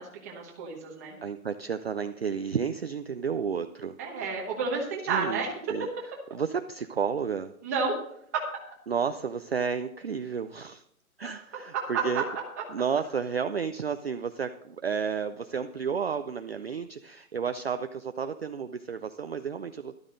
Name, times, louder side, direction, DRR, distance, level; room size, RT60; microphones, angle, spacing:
voice 1, 0.0-1.2 4.0-5.8 7.6-8.0 8.3-8.4 12.1-12.2, right 5 dB, 10° right, -1 dB, 1.1 m, -31 dB
voice 2, 1.2-4.0 5.1-5.4 5.7-5.9 6.3-7.5 8.9-10.8 11.2-12.3 12.7-20.0, right 6 dB, 45° right, 8 dB, 0.4 m, -31 dB
12.5 x 12.5 x 3.8 m, 0.70 s
hypercardioid pair, 175°, 43 cm